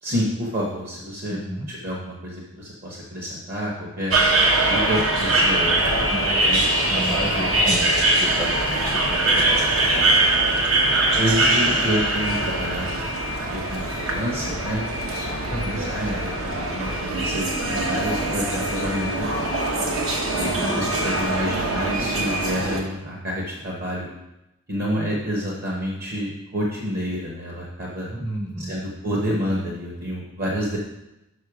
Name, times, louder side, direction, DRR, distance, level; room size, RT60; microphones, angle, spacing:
voice 1, 0.0-1.4 1.7-4.1 4.6-5.7 6.4-6.6 7.6-7.7 10.9-13.0 13.5-19.5 20.3-24.1 24.7-28.1 28.6-30.8, equal, 50° right, -3 dB, 1.1 m, -28 dB
voice 2, 1.3-1.7 6.1-6.3 6.9-7.9 8.2-8.5 8.9-9.2 9.5-9.6 15.5-15.8 20.5-20.8 28.1-28.8, equal, 20° right, -1 dB, 0.6 m, -31 dB
sound 1, 4.1-22.8, right 2 dB, 75° right, 1.0 m, -22 dB
6.5 x 5.5 x 4.8 m, 0.94 s
head